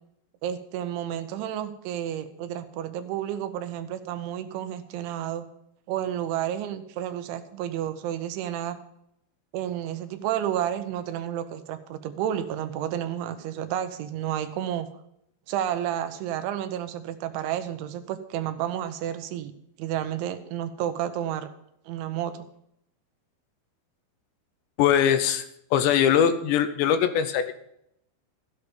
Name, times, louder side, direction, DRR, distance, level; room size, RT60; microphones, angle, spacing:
voice 1, 0.4-5.5 5.9-8.8 9.5-14.9 15.5-19.5 19.8-21.5 21.9-22.5, right 10 dB, 80° right, 9 dB, 3.3 m, -31 dB
voice 2, 24.8-25.4 25.7-27.5, left 9 dB, 80° left, 10 dB, 2.8 m, -21 dB
14.5 x 8.3 x 5.1 m, 0.76 s
omnidirectional pair, 5.4 m